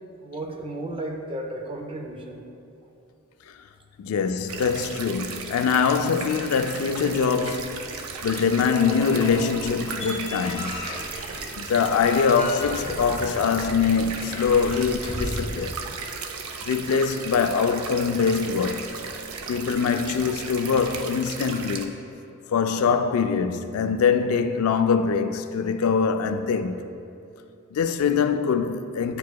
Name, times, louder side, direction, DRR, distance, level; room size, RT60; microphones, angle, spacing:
voice 1, 0.2-2.4, right 1 dB, 25° right, 0.4 m, -34 dB
voice 2, 4.0-10.8 11.6-15.7 16.6-19.0 19.5-22.0 22.5-26.8 27.7-29.2, left 6 dB, 90° left, 0.3 m, -23 dB
sound 1, 4.5-21.9, right 5 dB, 85° right, 0.5 m, -36 dB
sound 2, 7.4-15.5, left 1 dB, 25° left, 0.7 m, -36 dB
9.2 x 4.6 x 2.3 m
head